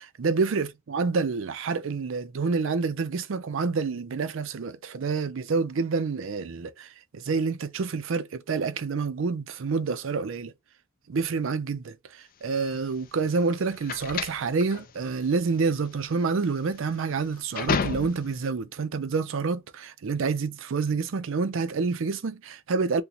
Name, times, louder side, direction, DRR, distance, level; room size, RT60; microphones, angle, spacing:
voice 1, 0.0-10.5 11.1-23.0, right 4 dB, 65° right, 0.5 m, -28 dB
sound 1, 12.5-18.5, left 6 dB, 45° left, 0.3 m, -33 dB
2.9 x 2.2 x 3.8 m
head